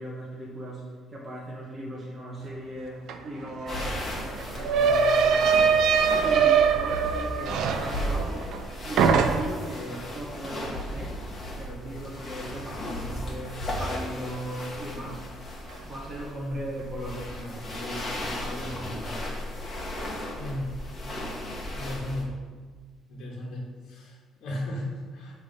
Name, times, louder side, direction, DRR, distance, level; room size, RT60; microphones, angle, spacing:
voice 1, 0.0-5.8 6.1-8.6 8.8-11.2 11.5-15.3 15.8-19.3, right 1 dB, 15° right, -5 dB, 0.9 m, -38 dB
sound 1, 3.1-3.2 3.4-8.7 9.0-9.7, right 6 dB, 60° right, 0.4 m, -23 dB
sound 2, 3.7-22.2, left 1 dB, 25° left, 1.3 m, -35 dB
voice 2, 20.4-20.7 21.7-22.3 23.1-25.3, left 1 dB, 55° left, -4 dB, 1.3 m, -35 dB
7.3 x 3.2 x 5.1 m, 1.5 s
cardioid pair, 165°, 0 cm